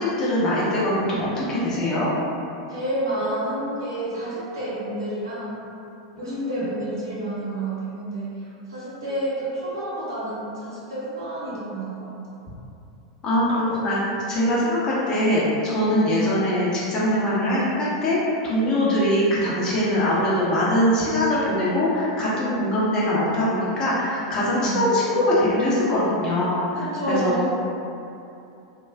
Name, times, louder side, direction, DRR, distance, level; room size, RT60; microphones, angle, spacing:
voice 1, 0.0-2.1 6.2-6.6 13.2-14.0 14.3-18.2 18.4-26.8 27.1-27.3, left 1 dB, 30° left, -7 dB, 0.9 m, -22 dB
voice 2, 2.7-5.6 6.2-12.1 15.8-16.0 18.7-19.0 24.5-24.9 26.7-27.5, right 1 dB, 70° right, -9 dB, 1.1 m, -29 dB
3.3 x 2.4 x 2.3 m, 2.7 s
figure-of-eight pair, 90°, 2 cm